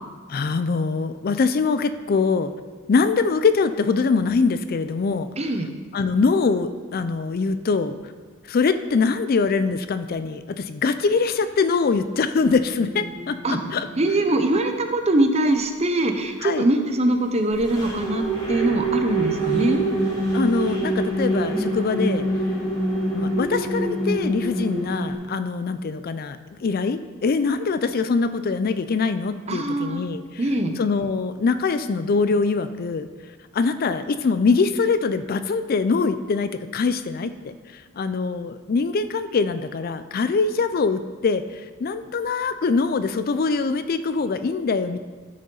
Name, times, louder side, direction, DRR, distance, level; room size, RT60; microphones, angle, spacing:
voice 1, 0.3-2.5 2.9-5.3 5.9-8.0 8.5-13.9 16.4-16.7 20.3-22.2 23.1-33.1 33.5-45.0, left 4 dB, 45° left, 11 dB, 0.4 m, -23 dB
voice 2, 5.4-5.7 13.4-13.6 14.0-19.8 29.5-30.0 30.4-30.8, right 1 dB, 30° right, 5 dB, 0.8 m, -22 dB
sound 1, 12.6-14.4 17.5-25.1, right 1 dB, 20° left, 3.3 m, -26 dB
13.0 x 6.5 x 3.9 m, 1.4 s
head